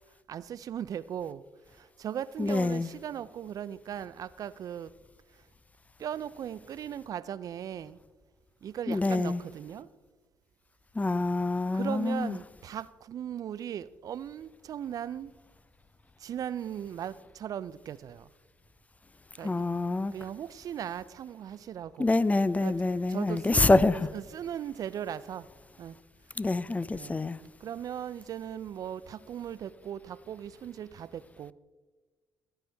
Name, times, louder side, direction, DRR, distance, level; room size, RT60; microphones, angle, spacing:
voice 1, 0.3-1.4 2.0-4.9 6.0-8.0 8.6-9.9 11.7-15.3 16.2-18.2 19.4-19.6 20.1-22.1 22.6-22.7 23.1-25.5 25.8-25.9 26.9-27.2 27.6-31.5, right 9 dB, 55° right, 0.4 m, -38 dB
voice 2, 2.4-2.9 8.9-9.4 11.0-12.4 19.4-20.1 22.0-24.1 26.4-27.4, left 2 dB, 20° left, 0.5 m, -26 dB
16.5 x 9.2 x 3.4 m
hypercardioid pair, 50°, 7 cm